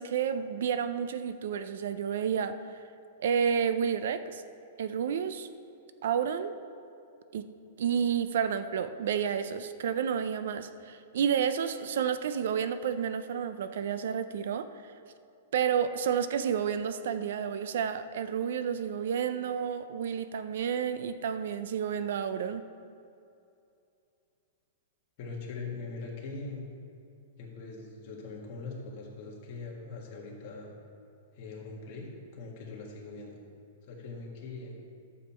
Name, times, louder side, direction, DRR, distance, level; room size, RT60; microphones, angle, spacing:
voice 1, 0.0-2.8 3.2-4.4 4.8-5.5 6.0-6.6 7.3-7.5 7.8-14.7 15.5-22.6, right 7 dB, 60° right, 11 dB, 0.4 m, -30 dB
voice 2, 25.2-26.6 27.4-30.7 31.3-33.4 33.9-34.8, left 3 dB, 35° left, -2 dB, 1.7 m, -41 dB
11.5 x 7.2 x 4.4 m, 2.6 s
supercardioid pair, 175°, 0 cm